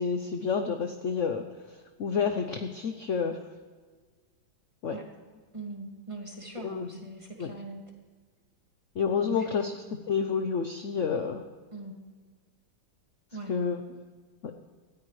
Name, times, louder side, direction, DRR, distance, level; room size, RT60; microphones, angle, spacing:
voice 1, 0.0-1.5 2.0-3.4 4.8-5.0 6.6-7.0 7.4-7.5 9.0-9.7 10.1-11.4 13.5-14.0 14.4-14.5, left 6 dB, 60° left, 6 dB, 0.8 m, -29 dB
voice 2, 5.5-7.8 9.2-9.7 11.7-12.0 13.3-13.5, right 2 dB, 15° right, 0 dB, 2.0 m, -41 dB
18.5 x 13.5 x 3.2 m, 1.5 s
omnidirectional pair, 2.1 m